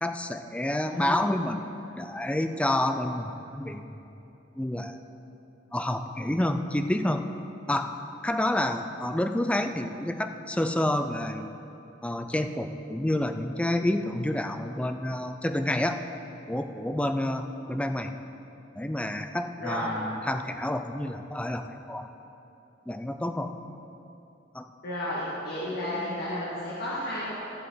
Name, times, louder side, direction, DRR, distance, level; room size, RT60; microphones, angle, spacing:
voice 1, 0.0-1.6 2.0-4.0 4.6-5.0 5.7-7.2 7.7-7.9 8.2-11.5 12.0-16.0 16.5-18.1 18.8-22.1 22.9-23.5 24.5-24.7, left 1 dB, 5° left, 7 dB, 0.4 m, -29 dB
voice 2, 0.8-1.3 19.6-19.9 24.8-27.3, left 1 dB, 60° left, -8 dB, 1.8 m, -32 dB
15.5 x 7.9 x 3.9 m, 2.9 s
head